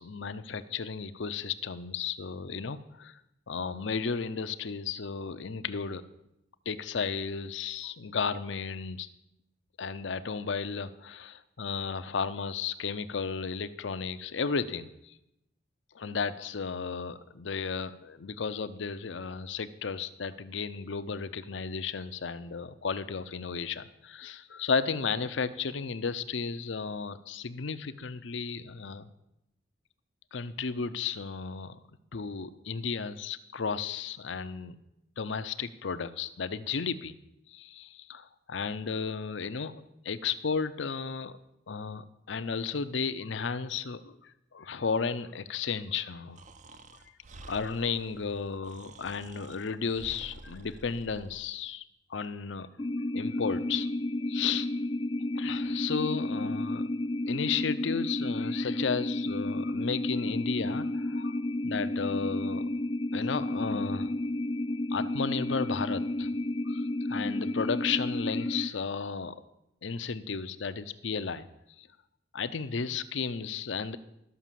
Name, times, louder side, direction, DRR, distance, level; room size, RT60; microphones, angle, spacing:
voice 1, 0.0-3.2 3.5-6.0 6.7-9.1 9.8-14.9 15.9-29.1 30.3-31.8 32.1-34.8 35.2-37.1 37.5-41.4 41.7-44.1 44.5-46.4 47.5-51.8 52.1-52.7 53.1-53.9 54.3-54.7 55.4-56.9 57.2-61.4 61.6-62.7 63.1-64.1 64.9-66.3 66.7-66.8 67.1-69.3 69.8-71.5 71.8-71.9 72.3-74.0, left 5 dB, 75° left, 12 dB, 0.6 m, -34 dB
Breathing, 46.3-51.5, right 2 dB, 40° right, 0.6 m, -50 dB
sound 1, 52.8-68.7, left 1 dB, 25° left, 0.4 m, -32 dB
12.5 x 6.1 x 7.5 m, 0.85 s
head